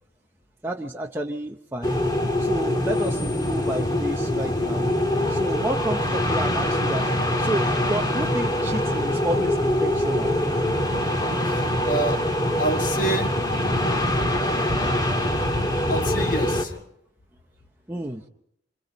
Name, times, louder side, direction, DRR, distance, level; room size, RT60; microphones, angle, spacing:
voice 1, 0.6-2.0 2.4-4.9 5.3-10.3 17.9-18.2, right 1 dB, 10° right, 0.7 m, -30 dB
sound 1, 1.8-16.6, left 1 dB, 20° left, 1.7 m, -24 dB
voice 2, 11.4-12.3 12.6-13.4 15.9-16.8, right 1 dB, 45° left, 1.5 m, -28 dB
26.5 x 26.0 x 4.1 m
head